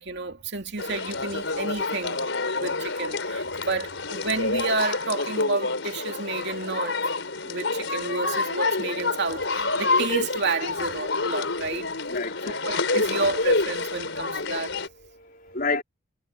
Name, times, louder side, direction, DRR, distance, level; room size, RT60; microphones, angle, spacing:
voice 1, 0.0-2.3 2.6-7.1 7.4-11.9 12.4-14.8, right 3 dB, 60° right, 2.8 m, -30 dB
sound 1, 0.8-14.9, left 3 dB, 70° left, 5.2 m, -28 dB
voice 2, 12.0-12.6 14.8-15.8, left 4 dB, 50° left, 3.9 m, -31 dB
head